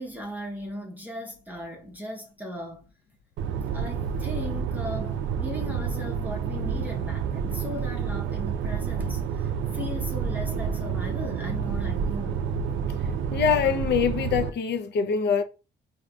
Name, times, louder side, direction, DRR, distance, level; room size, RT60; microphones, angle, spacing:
voice 1, 0.0-2.9 3.7-12.4, left 1 dB, 10° right, 0.7 m, -38 dB
sound 1, 3.4-14.5, right 7 dB, 75° right, 0.4 m, -29 dB
voice 2, 13.3-15.4, left 7 dB, 60° left, 0.5 m, -24 dB
3.6 x 2.7 x 2.2 m
cardioid pair, 90°, 20 cm